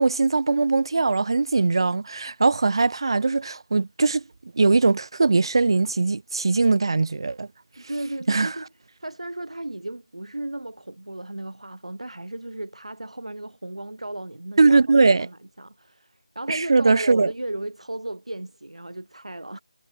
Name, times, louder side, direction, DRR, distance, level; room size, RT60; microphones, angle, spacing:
voice 1, 0.0-4.2 4.5-7.5 8.3-8.5 14.6-15.3 16.5-17.3, right 3 dB, 45° right, 2.7 m, -20 dB
voice 2, 7.8-8.7 9.0-14.8 15.2-19.6, right 1 dB, 70° right, 4.2 m, -35 dB
figure-of-eight pair, 160°, 3 cm